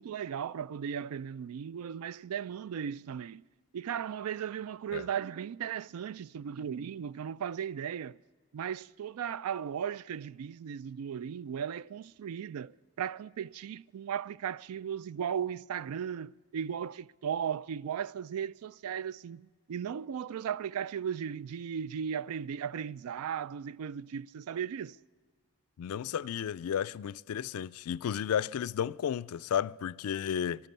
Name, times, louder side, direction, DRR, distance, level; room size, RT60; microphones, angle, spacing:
voice 1, 0.0-3.4 3.7-8.2 8.5-25.0, right 8 dB, 80° right, 0.3 m, -36 dB
voice 2, 25.8-30.7, left 8 dB, 80° left, 0.3 m, -33 dB
14.5 x 12.0 x 6.8 m
head